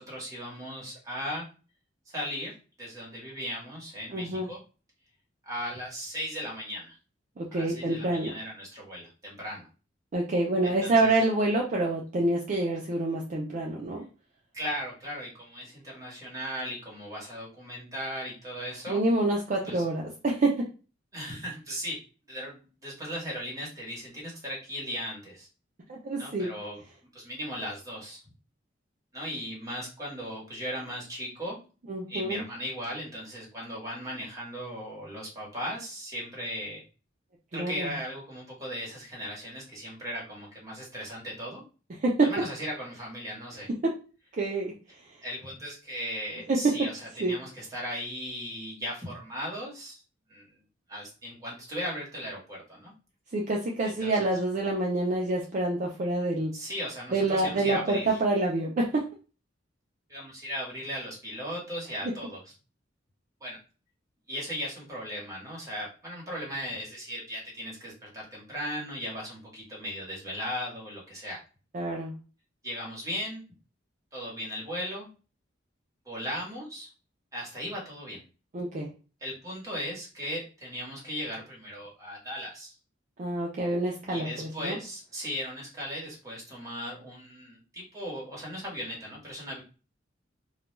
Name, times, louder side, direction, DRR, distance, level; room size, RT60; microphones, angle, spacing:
voice 1, 0.0-1.5 2.1-4.6 5.4-7.0 7.5-9.7 10.6-11.2 14.5-19.0 19.6-19.8 21.1-22.0 22.3-25.5 26.2-26.8 27.1-28.2 29.1-31.6 32.1-36.8 37.5-41.6 42.2-43.7 45.2-50.0 50.3-50.5 50.9-52.9 53.8-54.3 56.5-58.2 60.1-62.4 63.4-63.6 64.3-71.4 72.6-73.4 74.1-75.1 76.0-76.9 77.3-78.2 79.2-82.8 84.1-89.6, equal, 20° right, -5 dB, 1.1 m, -37 dB
voice 2, 4.1-4.5 7.4-8.3 10.1-14.0 18.9-20.6 26.0-26.5 31.9-32.4 37.5-37.9 42.0-42.2 44.4-44.7 46.5-46.6 47.2-47.3 53.3-56.5 57.1-59.0 71.7-72.1 78.5-78.9 83.2-84.8, right 2 dB, 40° right, -2 dB, 0.4 m, -27 dB
2.3 x 2.2 x 3.0 m, 0.34 s
head